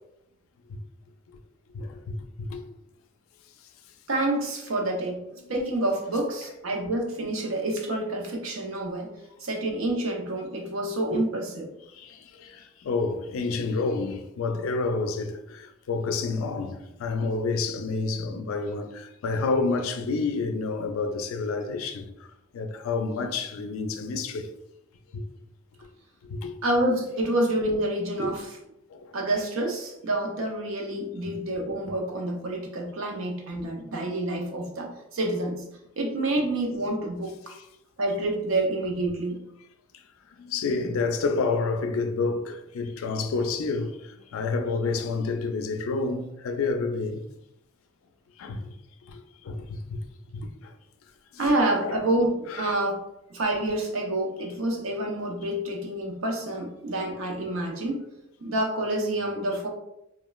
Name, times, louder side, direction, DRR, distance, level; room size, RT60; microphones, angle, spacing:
voice 1, 1.7-2.6 12.0-22.1 22.5-24.5 25.1-25.2 26.4-26.5 28.9-29.0 31.2-31.3 40.4-44.0 44.3-47.2 48.4-48.7 49.1-49.2 49.5-49.6 50.3-50.5 51.8-52.0 52.5-52.8, left 4 dB, 90° left, 0.4 m, -29 dB
voice 2, 4.1-5.2 5.5-9.1 9.4-11.7 26.6-28.6 29.1-35.6 36.0-37.5 38.0-39.4 51.4-53.0 53.3-58.0 58.4-59.7, right 1 dB, 85° right, 0.6 m, -28 dB
3.0 x 2.2 x 2.3 m
head